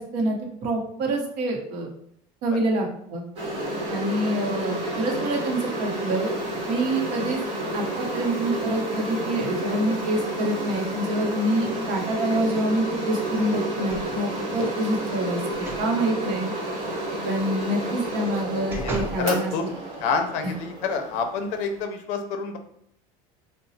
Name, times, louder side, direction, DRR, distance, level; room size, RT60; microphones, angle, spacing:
voice 1, 0.0-1.9 2.4-3.2 3.9-6.3 6.7-7.4 7.7-15.4 15.8-16.5 17.2-19.5 20.4-20.5, right 1 dB, 65° right, 1 dB, 0.7 m, -26 dB
sound 1, 3.4-21.8, right 1 dB, 40° right, 1.0 m, -30 dB
sound 2, 13.9-14.4 15.5-15.9 16.3-16.4 18.0-19.3 19.8-19.9, right 2 dB, 15° right, 0.4 m, -35 dB
voice 2, 18.7-19.6 20.0-22.6, left 5 dB, 60° left, 6 dB, 0.5 m, -28 dB
3.9 x 2.0 x 2.7 m, 0.70 s
cardioid pair, 160°, 14 cm